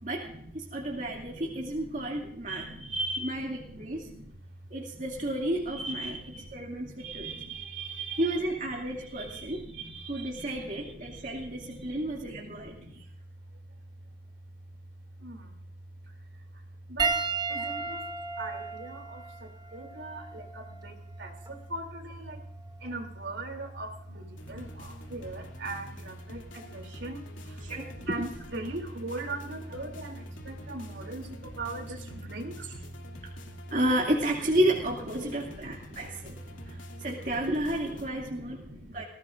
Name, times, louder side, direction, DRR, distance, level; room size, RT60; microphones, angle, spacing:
voice 1, 0.0-2.7 3.1-4.1 4.7-6.2 6.5-7.3 8.2-9.6 10.1-12.7 17.6-17.7 27.6-28.3 31.9-32.0 32.7-32.8 33.7-36.4 36.7-38.6 38.9-39.0, right 1 dB, 40° right, -2 dB, 2.5 m, -31 dB
voice 2, 0.7-4.3 5.0-5.3 5.7-13.0 15.2-15.6 16.9-17.2 17.5-18.0 18.4-22.4 22.8-27.6 28.0-32.7 34.3-34.4 35.1-36.8 37.2-39.0, right 2 dB, 70° right, 3 dB, 3.1 m, -40 dB
Piano, 17.0-21.7 22.6-22.8 24.7-24.8, right 4 dB, 20° right, 1.1 m, -34 dB
sound 1, 24.4-38.1, left 1 dB, 75° left, 2.7 m, -48 dB
20.0 x 16.5 x 2.6 m, 0.70 s
head